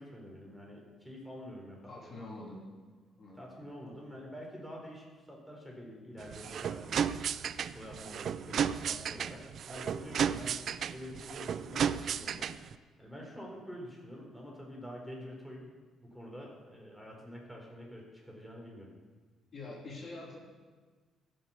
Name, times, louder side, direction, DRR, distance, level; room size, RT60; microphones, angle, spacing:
voice 1, 0.0-2.2 3.3-7.1 7.6-12.5 13.0-15.7 16.0-18.9, equal, ahead, -2 dB, 4.3 m, -47 dB
voice 2, 1.9-2.6 3.2-3.5 19.5-20.4, left 2 dB, 45° left, -3 dB, 3.3 m, -45 dB
sound 1, 6.2-12.8, right 8 dB, 60° right, 0.4 m, -34 dB
15.0 x 6.8 x 7.1 m, 1.4 s
supercardioid pair, 70°, 0 cm